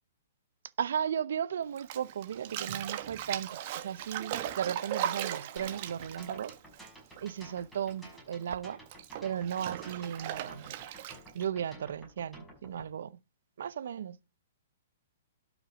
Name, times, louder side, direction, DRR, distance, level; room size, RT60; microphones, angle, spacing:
voice 1, 0.8-6.5 7.2-8.8 9.2-10.7 11.3-13.2 13.6-14.2, right 8 dB, 70° right, 0.7 m, -35 dB
Bathtub (filling or washing), 1.8-7.6 7.9-11.4, right 11 dB, 45° right, 1.2 m, -38 dB
sound 1, 5.6-12.9, right 1 dB, ahead, 5.9 m, -52 dB
12.0 x 6.0 x 5.1 m
hypercardioid pair, 150°, 0 cm